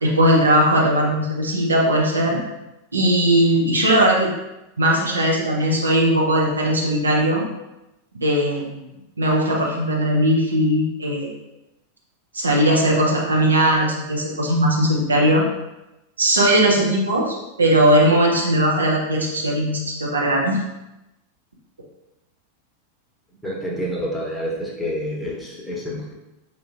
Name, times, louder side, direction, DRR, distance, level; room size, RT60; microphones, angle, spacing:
voice 1, 0.0-2.4 2.9-4.3 4.8-7.4 8.2-8.9 9.2-11.3 12.3-15.4 16.2-20.6, right 1 dB, 75° right, -3 dB, 0.9 m, -19 dB
voice 2, 23.4-26.1, equal, 5° left, -4 dB, 1.0 m, -28 dB
4.7 x 3.0 x 2.7 m, 0.95 s
figure-of-eight pair, 90°, 0 cm